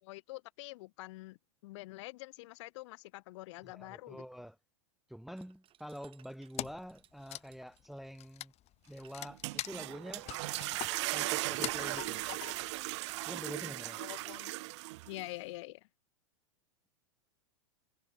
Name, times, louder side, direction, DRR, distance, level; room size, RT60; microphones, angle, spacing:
voice 1, 0.0-4.2 14.0-14.7 15.1-15.9, left 20 dB, 60° left, 3.2 m, -46 dB
voice 2, 3.6-4.6 5.1-8.5 8.9-10.3 11.1-12.2 13.3-14.0, equal, ahead, 1.0 m, -46 dB
sound 1, 5.3-8.3 8.9-9.9 10.8-11.7 13.3-14.5, right 11 dB, 30° right, 6.7 m, -66 dB
Wood, 6.6-6.9 7.2-12.8, left 15 dB, 35° left, 4.2 m, -43 dB
sound 2, 9.2-15.3, right 20 dB, 55° right, 0.7 m, -37 dB
hypercardioid pair, 100°, 17 cm